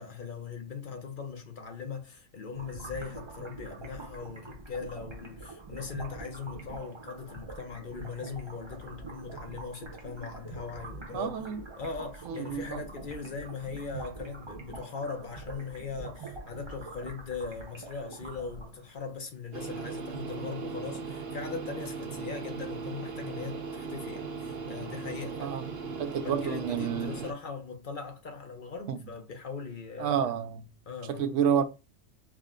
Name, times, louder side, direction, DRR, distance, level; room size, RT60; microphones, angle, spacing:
voice 1, 0.0-11.4 11.8-25.6 26.2-30.2 30.9-31.4, left 5 dB, 50° left, 0.8 m, -40 dB
sound 1, 2.5-19.0, right 3 dB, 25° right, 0.7 m, -44 dB
voice 2, 11.1-11.6 12.3-12.8 25.4-25.6 26.0-27.1 28.9-29.0 30.0-30.7 31.1-31.6, right 8 dB, 85° right, 0.9 m, -29 dB
radio white noise tuning, 19.5-27.3, right 4 dB, 60° right, 1.0 m, -38 dB
4.8 x 2.1 x 3.6 m
omnidirectional pair, 1.2 m